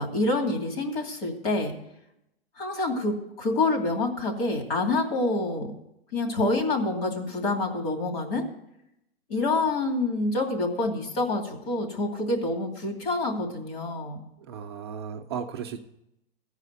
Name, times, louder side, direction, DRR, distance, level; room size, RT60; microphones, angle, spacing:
voice 1, 0.0-1.7 2.6-5.7 6.1-8.4 9.3-14.2, left 2 dB, 65° left, 2 dB, 2.6 m, -27 dB
voice 2, 14.5-15.8, right 7 dB, 25° right, 2 dB, 0.4 m, -35 dB
14.5 x 4.9 x 8.1 m, 0.83 s
supercardioid pair, 165°, 32 cm